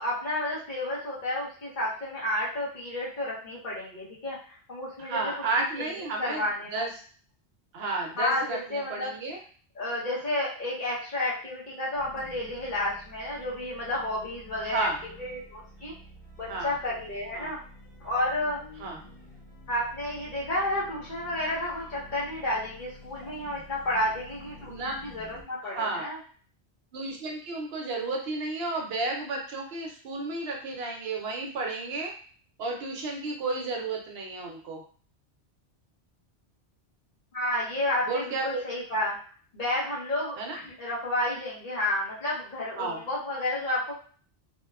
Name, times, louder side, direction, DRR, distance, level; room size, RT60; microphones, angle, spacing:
voice 1, 0.0-6.9 8.2-9.2 9.7-15.9 16.4-17.6 18.0-18.6 19.7-26.2 37.3-39.2 39.5-43.9, left 1 dB, 50° left, -7 dB, 1.0 m, -31 dB
voice 2, 5.0-6.4 6.7-6.9 7.7-9.4 14.6-15.0 16.5-16.7 17.3-17.5 18.8-19.0 24.7-25.0 25.6-26.1 26.9-32.1 32.6-34.8 38.1-38.6 40.4-40.6 42.8-43.0, right 3 dB, 70° right, 1 dB, 0.8 m, -32 dB
sound 1, 11.9-25.4, equal, 10° right, 0.8 m, -49 dB
2.8 x 2.1 x 2.3 m, 0.43 s
omnidirectional pair, 1.1 m